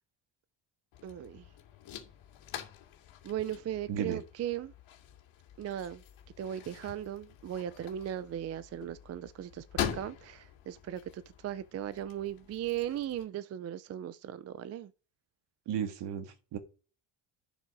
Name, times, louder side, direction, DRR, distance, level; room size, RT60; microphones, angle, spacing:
sound 1, 0.9-13.2, left 10 dB, 75° left, 2.5 m, -44 dB
voice 1, 1.0-1.5 3.2-4.7 5.6-6.0 6.4-14.9, right 11 dB, 35° right, 0.4 m, -37 dB
voice 2, 3.9-4.2 15.6-16.6, right 8 dB, 65° right, 1.8 m, -34 dB
11.5 x 6.1 x 4.9 m
cardioid pair, 175°, 46 cm